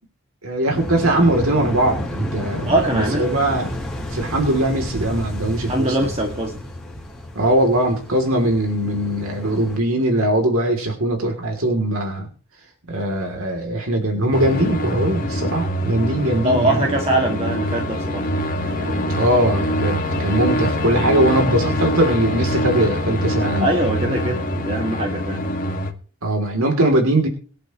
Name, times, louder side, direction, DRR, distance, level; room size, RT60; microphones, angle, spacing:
voice 1, 0.4-3.7 4.1-6.1 7.3-12.3 12.9-16.8 19.1-23.7 26.2-27.3, right 1 dB, 80° right, 3 dB, 3.2 m, -20 dB
sound 1, 0.7-9.8, left 1 dB, ahead, 3.5 m, -31 dB
voice 2, 2.6-3.3 5.7-6.6 16.4-18.3 18.6-19.1 23.6-25.4, right 1 dB, 30° right, 0 dB, 2.1 m, -22 dB
sound 2, 14.3-25.9, equal, 40° left, 2.1 m, -24 dB
22.5 x 11.0 x 3.1 m, 0.40 s
head